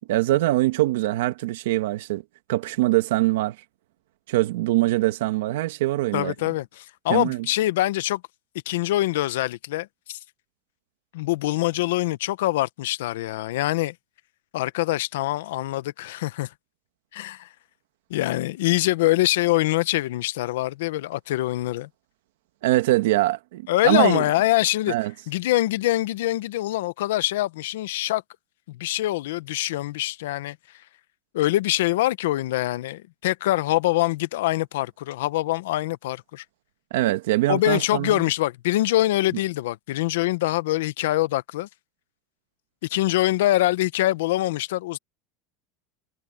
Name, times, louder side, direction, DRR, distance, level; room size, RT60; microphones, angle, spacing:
voice 1, 0.1-2.2 2.5-3.6 4.3-6.3 7.1-7.5 22.6-24.2 24.9-25.1 36.9-38.2, right 17 dB, 85° right, 1.4 m, -23 dB
voice 2, 6.1-8.2 8.7-10.2 11.1-13.9 14.5-16.5 17.1-17.5 18.1-21.9 23.7-24.9 25.3-28.2 28.7-30.6 31.3-36.4 37.5-41.7 42.9-45.0, left 16 dB, 85° left, 0.8 m, -24 dB
supercardioid pair, 165°, 0 cm